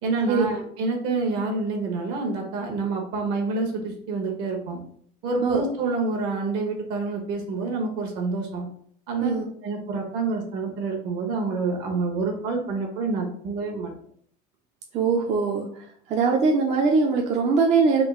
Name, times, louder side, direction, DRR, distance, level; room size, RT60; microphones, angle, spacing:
voice 1, 0.0-4.8 5.2-8.7 9.1-9.3 9.6-13.9, right 3 dB, 65° right, 2 dB, 1.1 m, -27 dB
voice 2, 14.9-15.7 16.1-18.1, right 4 dB, 35° right, 1 dB, 0.4 m, -21 dB
3.7 x 2.3 x 3.6 m, 0.62 s
cardioid pair, 145°, 19 cm